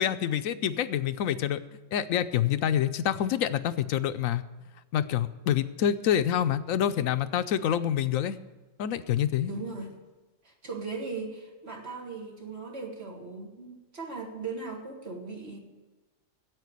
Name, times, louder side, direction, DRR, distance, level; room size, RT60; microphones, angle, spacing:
voice 1, 0.0-1.6 1.9-4.4 4.9-8.4 8.8-9.5, left 10 dB, 80° left, 12 dB, 1.0 m, -27 dB
voice 2, 9.5-10.0 10.4-15.6, right 4 dB, 50° right, 1 dB, 2.2 m, -38 dB
9.2 x 8.4 x 9.5 m, 1.2 s
omnidirectional pair, 1.4 m